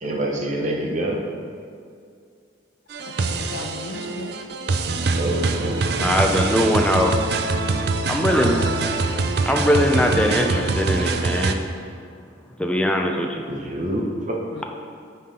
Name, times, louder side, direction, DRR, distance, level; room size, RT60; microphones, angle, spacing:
voice 1, 0.0-1.2 5.1-5.8 13.5-14.6, right 1 dB, 40° right, 0 dB, 0.9 m, -26 dB
sound 1, 2.9-11.5, right 3 dB, 55° right, 0.4 m, -24 dB
voice 2, 3.0-4.3 8.4-9.1 14.5-14.6, left 2 dB, 75° left, 4 dB, 0.7 m, -35 dB
voice 3, 6.0-7.1 8.1-8.6 9.5-11.7 12.6-13.4, equal, 5° left, 1 dB, 0.5 m, -21 dB
9.9 x 5.6 x 3.8 m, 2.3 s
head